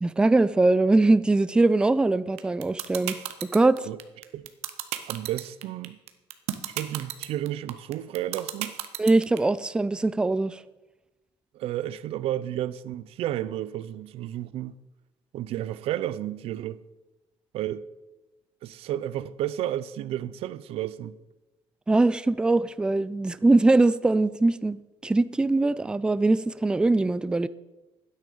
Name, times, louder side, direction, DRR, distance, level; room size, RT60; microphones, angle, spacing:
voice 1, 0.0-3.2 3.4-3.8 9.0-10.6 21.9-24.8 25.0-27.5, right 2 dB, 10° right, 0.4 m, -22 dB
sound 1, 2.4-9.4, right 13 dB, 85° right, 1.1 m, -31 dB
voice 2, 5.1-6.0 6.7-8.8 11.5-14.8 15.3-16.8 17.5-17.8 18.6-21.2, right 12 dB, 65° right, 0.6 m, -32 dB
12.0 x 9.7 x 6.9 m
cardioid pair, 150°, 11 cm